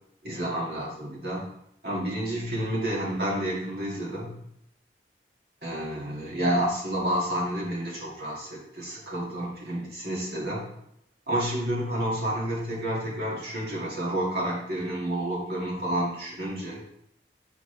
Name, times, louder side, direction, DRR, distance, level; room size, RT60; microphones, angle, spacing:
voice 1, 0.2-1.5 1.8-4.3 5.6-10.6 11.3-16.8, right 1 dB, 60° right, -5 dB, 2.1 m, -30 dB
8.5 x 4.0 x 3.3 m, 0.78 s
head